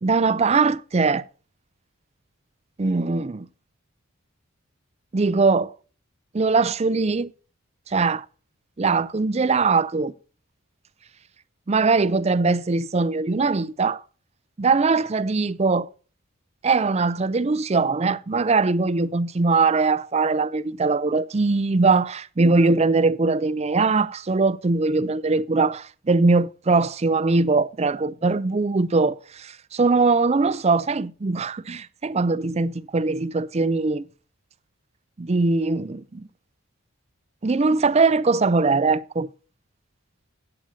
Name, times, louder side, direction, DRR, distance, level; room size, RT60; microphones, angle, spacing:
voice 1, 0.0-1.3 2.8-3.5 5.1-5.7 6.3-7.3 7.9-8.2 8.8-10.1 11.7-14.0 14.6-15.9 16.6-34.0 35.2-36.3 37.4-39.3, right 3 dB, 30° right, 0.4 m, -21 dB
16.0 x 8.8 x 2.7 m
head